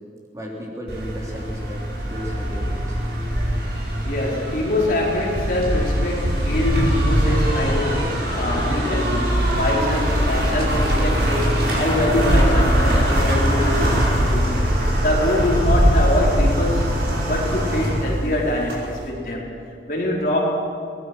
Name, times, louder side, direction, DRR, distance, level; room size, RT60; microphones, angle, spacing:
voice 1, 0.3-3.0, equal, 20° right, -3 dB, 3.4 m, -35 dB
sound 1, 0.9-19.0, equal, 70° right, 5.3 m, -21 dB
voice 2, 4.0-19.5 19.9-20.4, left 1 dB, 50° left, -3 dB, 4.7 m, -24 dB
24.5 x 19.0 x 6.3 m, 2.5 s
head